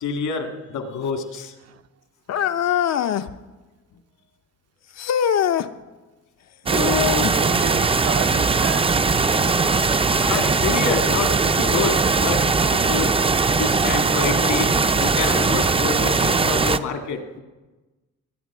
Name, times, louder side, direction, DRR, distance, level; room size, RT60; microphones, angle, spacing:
voice 1, 0.0-1.5 10.2-12.4 12.7-13.1 13.6-14.7 15.0-17.4, left 5 dB, 75° left, 5 dB, 2.0 m, -27 dB
sound 1, 2.3-3.3 5.0-5.7 6.7-7.4 9.5-9.6 10.4-10.5 11.5-11.6, left 9 dB, 60° left, 0.7 m, -22 dB
voice 2, 6.6-8.9, right 8 dB, 55° right, 9 dB, 0.8 m, -31 dB
sound 2, 6.7-16.8, right 4 dB, 20° right, 0.6 m, -20 dB
20.0 x 9.1 x 6.0 m, 1.2 s
cardioid pair, 90°, 30 cm